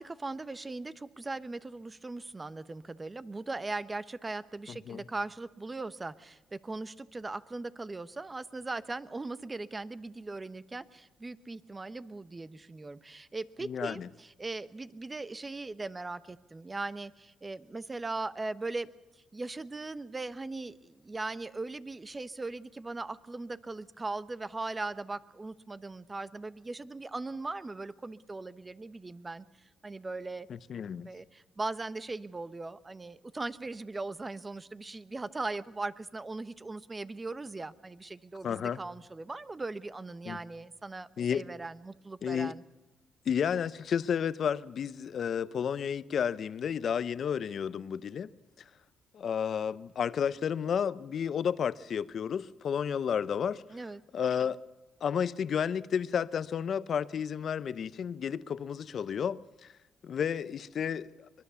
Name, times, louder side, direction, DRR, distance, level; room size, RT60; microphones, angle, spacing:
voice 1, 0.0-18.9 19.3-29.4 29.8-30.5 31.0-42.6 53.7-54.0, right 3 dB, 20° right, 1.0 m, -39 dB
voice 2, 4.7-5.0 13.6-14.1 30.5-31.1 38.4-38.8 40.3-40.4 41.2-41.4 42.2-42.5 43.3-48.3 49.1-53.6 54.1-54.6 55.0-59.7 60.0-61.1, left 7 dB, 55° left, 0.8 m, -31 dB
24.0 x 21.5 x 7.0 m
cardioid pair, 90°, 0 cm